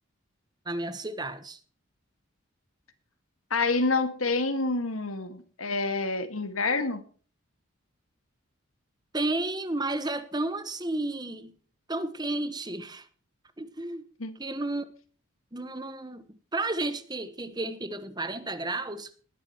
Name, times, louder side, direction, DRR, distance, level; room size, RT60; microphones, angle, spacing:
voice 1, 0.6-1.6 9.1-11.5 11.9-13.1 13.6-14.1 14.4-14.9 15.5-19.2, right 2 dB, 20° right, 1.1 m, -32 dB
voice 2, 3.5-7.0 14.2-14.3, left 3 dB, 80° left, 1.9 m, -27 dB
20.0 x 10.5 x 3.0 m
head